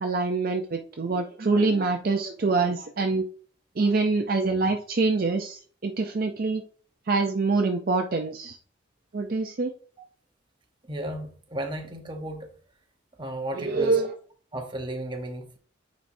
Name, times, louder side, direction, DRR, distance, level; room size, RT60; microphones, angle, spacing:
voice 1, 0.0-3.2 3.8-6.6 7.1-8.6 9.1-9.7 13.5-14.1, right 3 dB, 45° right, 0.5 m, -25 dB
voice 2, 10.9-12.5 13.2-14.1 14.5-15.6, right 1 dB, 25° right, 0.8 m, -34 dB
9.3 x 4.1 x 2.6 m
head